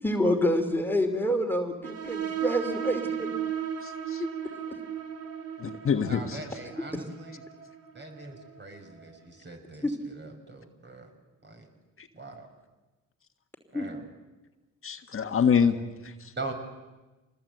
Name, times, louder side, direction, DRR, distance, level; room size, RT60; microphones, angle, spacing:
voice 1, 0.0-3.3 4.2-4.3 6.9-7.0 9.8-9.9 13.7-13.9, equal, 5° left, 3 dB, 2.8 m, -27 dB
sound 1, 1.8-9.1, right 9 dB, 55° right, 2.2 m, -36 dB
voice 2, 3.8-4.2 5.6-6.4 12.0-12.1 14.8-16.3, left 6 dB, 45° left, 6 dB, 1.5 m, -26 dB
voice 3, 6.0-7.4 7.9-11.1 11.4-11.7 12.1-12.5 13.7-14.0 16.4-16.5, right 3 dB, 35° right, 4 dB, 5.9 m, -42 dB
26.5 x 20.0 x 8.0 m, 1.1 s
cardioid pair, 90°, 30 cm